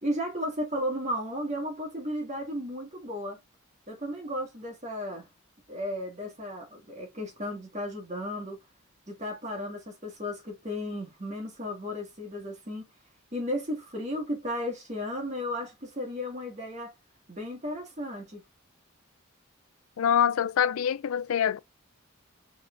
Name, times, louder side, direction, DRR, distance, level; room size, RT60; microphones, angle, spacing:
voice 1, 0.0-3.4 3.9-5.3 5.7-8.6 9.1-12.8 13.3-16.9 17.3-18.4, equal, 35° right, 1.7 m, -34 dB
voice 2, 20.0-21.6, left 8 dB, 85° left, 0.4 m, -25 dB
5.0 x 3.6 x 2.5 m
head